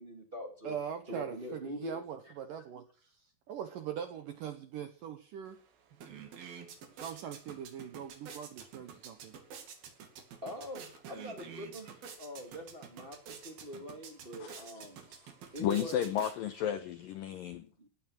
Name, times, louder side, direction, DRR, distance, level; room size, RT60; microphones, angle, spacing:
voice 1, 0.0-0.8 1.1-2.0 10.4-15.0 15.5-16.0 17.8-17.9, left 1 dB, 25° right, 3 dB, 1.1 m, -44 dB
voice 2, 0.6-3.2 3.5-5.6 7.0-9.4, right 8 dB, 75° right, 8 dB, 2.0 m, -41 dB
sound 1, 5.5-5.6 5.8-16.8, right 7 dB, 60° right, 4.0 m, -49 dB
voice 3, 15.6-17.7, left 10 dB, 80° left, 10 dB, 2.0 m, -33 dB
17.0 x 11.0 x 6.4 m, 0.41 s
omnidirectional pair, 5.2 m